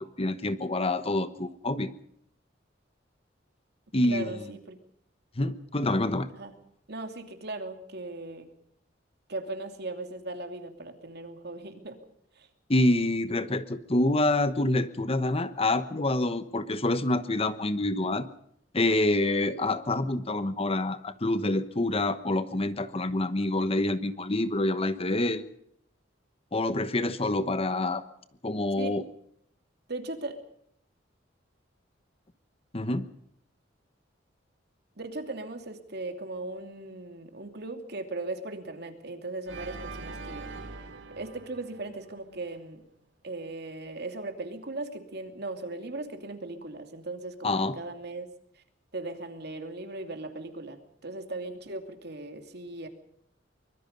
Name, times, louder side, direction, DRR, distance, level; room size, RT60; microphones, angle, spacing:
voice 1, 0.0-1.9 3.9-4.4 5.4-6.3 12.7-18.3 18.7-25.4 26.5-28.0 28.4-29.0 32.7-33.1 47.4-47.7, left 2 dB, 30° left, 12 dB, 1.1 m, -27 dB
voice 2, 4.0-4.8 6.3-6.5 6.9-8.5 9.3-12.0 12.3-12.5 28.7-29.0 29.9-30.4 35.0-40.5 41.2-42.8 43.2-48.3 48.6-48.7 48.9-52.9, right 2 dB, 60° right, 6 dB, 2.8 m, -38 dB
Organ, 39.4-42.6, right 3 dB, 75° right, 2.5 m, -42 dB
24.5 x 22.0 x 5.4 m, 0.72 s
head